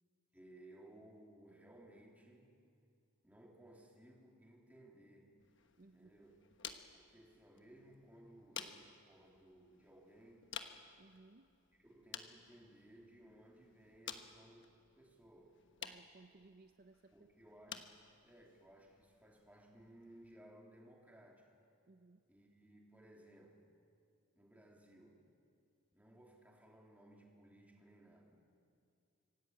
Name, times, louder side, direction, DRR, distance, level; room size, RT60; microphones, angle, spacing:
voice 1, 0.3-2.6 3.2-5.3 5.8-6.4 6.9-10.5 11.8-14.7 14.9-15.6 17.1-17.9 18.2-21.5 22.3-23.7 24.3-25.2 25.9-28.4, right 1 dB, 5° right, -1 dB, 3.0 m, -61 dB
sound 1, 5.4-20.4, left 8 dB, 55° left, 1.2 m, -54 dB
voice 2, 5.8-6.1 11.0-11.5 15.8-17.1 21.9-22.2, right 3 dB, 45° right, 8 dB, 0.6 m, -62 dB
25.5 x 17.0 x 8.7 m, 2.4 s
head